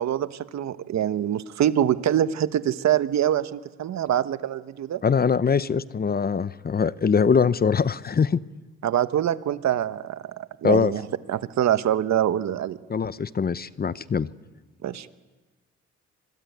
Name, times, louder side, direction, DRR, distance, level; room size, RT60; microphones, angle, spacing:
voice 1, 0.0-5.0 8.8-11.0 11.3-12.8 14.8-15.1, right 10 dB, 65° right, 13 dB, 1.1 m, -24 dB
voice 2, 5.0-8.4 10.6-10.9 12.9-14.3, left 6 dB, 30° left, 16 dB, 0.8 m, -22 dB
26.0 x 21.5 x 9.4 m, 1.3 s
cardioid pair, 90°, 30 cm